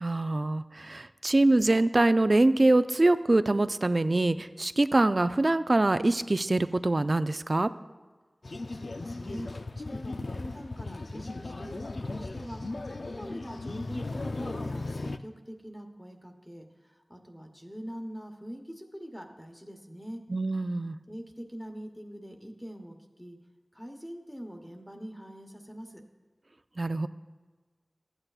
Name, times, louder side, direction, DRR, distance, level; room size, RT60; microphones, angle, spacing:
voice 1, 0.0-7.7 20.3-21.0 26.8-27.1, right 2 dB, 50° right, 12 dB, 0.3 m, -24 dB
sound 1, 8.4-15.2, left 2 dB, 80° left, 0.3 m, -37 dB
voice 2, 8.7-9.5 9.8-20.2 21.1-23.4 23.7-26.0, equal, 10° left, 3 dB, 1.0 m, -44 dB
14.0 x 8.8 x 2.4 m, 1.3 s
wide cardioid pair, 55°, 0 cm